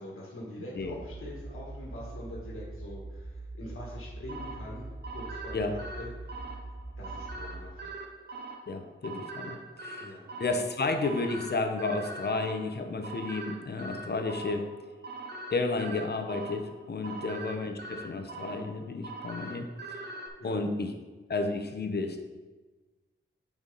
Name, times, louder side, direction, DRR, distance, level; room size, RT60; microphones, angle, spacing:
voice 1, 0.0-6.6 7.0-7.9 10.0-10.3 17.0-17.4 20.4-20.6, left 1 dB, 80° left, -4 dB, 1.8 m, -44 dB
sound 1, 0.8-7.7, right 2 dB, 20° right, 1.0 m, -43 dB
sound 2, 4.3-20.3, right 3 dB, 50° right, 1.0 m, -43 dB
voice 2, 8.7-10.1 10.4-14.7 15.5-19.7 19.9-20.1 20.4-20.9 21.3-22.2, left 3 dB, 50° left, 5 dB, 0.9 m, -32 dB
9.1 x 4.8 x 4.0 m, 1.3 s
wide cardioid pair, 125°, 21 cm